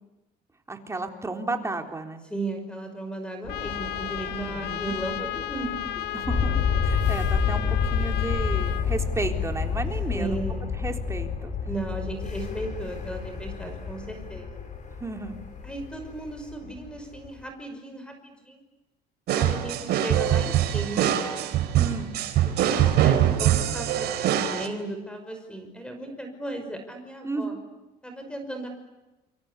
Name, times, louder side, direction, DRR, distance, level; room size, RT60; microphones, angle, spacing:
voice 1, 0.7-2.2 4.3-5.0 6.1-10.4 10.8-11.5 13.6-13.7 15.0-15.3 21.8-22.1 27.2-27.6, right 3 dB, 15° right, 4 dB, 3.6 m, -33 dB
voice 2, 2.3-5.8 10.1-10.7 11.7-14.5 15.6-18.6 19.3-21.1 22.4-27.6 28.0-28.7, right 2 dB, 5° left, 6 dB, 5.8 m, -35 dB
sound 1, 3.4-17.4, left 6 dB, 45° left, 6.9 m, -30 dB
Trumpet, 3.5-8.9, left 13 dB, 75° left, 1.9 m, -34 dB
sound 2, 19.3-24.7, right 11 dB, 75° right, 3.6 m, -23 dB
28.0 x 25.0 x 8.4 m, 1.0 s
cardioid pair, 110°, 17 cm